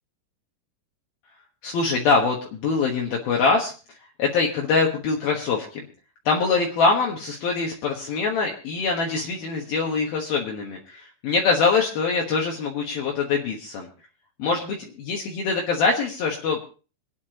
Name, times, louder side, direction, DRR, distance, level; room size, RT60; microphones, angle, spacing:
voice 1, 1.6-3.7 4.2-5.8 6.3-13.9 14.4-16.6, left 4 dB, 70° left, -1 dB, 3.1 m, -23 dB
26.5 x 9.7 x 2.9 m, 0.35 s
omnidirectional pair, 4.7 m